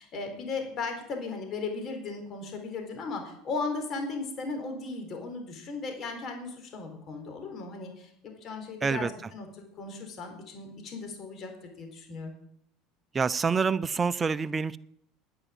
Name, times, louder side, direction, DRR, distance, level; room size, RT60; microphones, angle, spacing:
voice 1, 0.0-8.1 8.4-12.3, left 4 dB, 45° left, 4 dB, 4.0 m, -36 dB
voice 2, 13.1-14.8, right 5 dB, 25° right, 14 dB, 0.7 m, -27 dB
10.5 x 9.9 x 9.1 m, 0.70 s
supercardioid pair, 95°, 0 cm